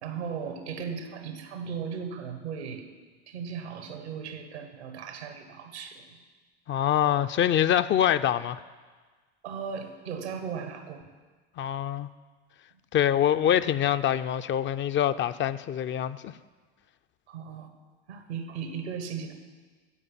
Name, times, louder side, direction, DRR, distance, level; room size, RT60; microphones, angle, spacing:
voice 1, 0.0-2.9 3.3-6.2 9.4-11.0 17.3-17.7 18.1-19.3, right 6 dB, 85° right, 1.4 m, -37 dB
voice 2, 6.7-8.6 11.6-12.1 12.9-16.3, left 10 dB, 35° left, 0.5 m, -25 dB
14.5 x 5.1 x 8.4 m
hypercardioid pair, 80°, 32 cm